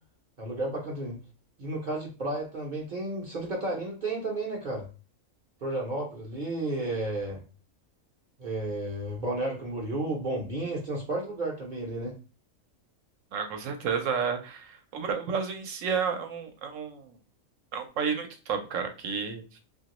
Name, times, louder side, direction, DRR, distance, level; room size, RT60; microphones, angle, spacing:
voice 1, 0.4-1.2 1.6-4.9 5.6-7.4 8.4-12.1, right 2 dB, 45° right, -2 dB, 0.6 m, -32 dB
voice 2, 13.3-17.1 17.7-19.4, right 6 dB, 75° right, 6 dB, 1.0 m, -31 dB
2.9 x 2.5 x 2.9 m, 0.34 s
omnidirectional pair, 1.4 m